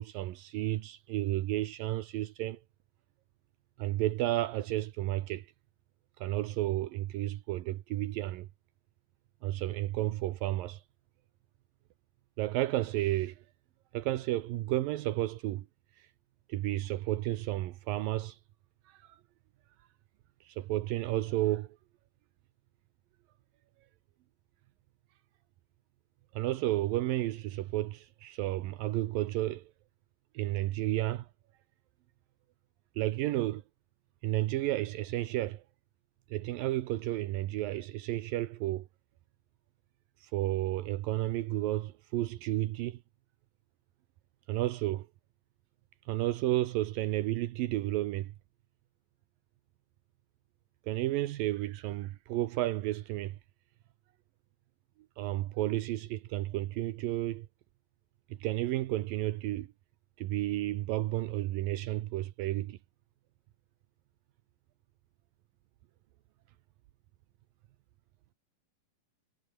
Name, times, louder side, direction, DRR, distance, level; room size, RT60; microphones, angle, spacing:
voice 1, 0.0-2.6 3.8-5.5 6.2-8.5 9.4-10.8 12.4-13.4 13.9-15.7 16.0-16.1 16.5-18.4 18.9-19.2 20.4-21.8 26.3-29.7 30.3-31.3 33.0-33.6 34.2-35.6 36.3-38.9 40.2-43.0 44.5-45.1 46.1-48.3 50.9-53.4 55.2-57.5 58.3-59.7 60.2-62.8, right 15 dB, 80° right, 2.7 m, -32 dB
omnidirectional pair, 4.1 m